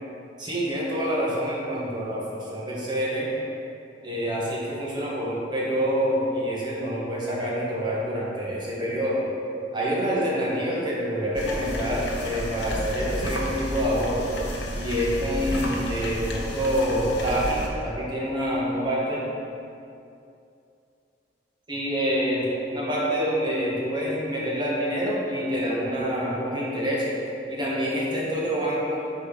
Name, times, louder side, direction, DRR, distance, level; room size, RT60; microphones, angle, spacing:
voice 1, 0.4-3.3 4.0-9.3 9.7-14.3 14.7-19.2 21.7-27.2 27.5-29.0, equal, 25° right, -6 dB, 1.4 m, -27 dB
sound 1, 11.3-17.7, left 1 dB, 65° left, 0.9 m, -31 dB
6.9 x 4.5 x 5.6 m, 2.6 s
head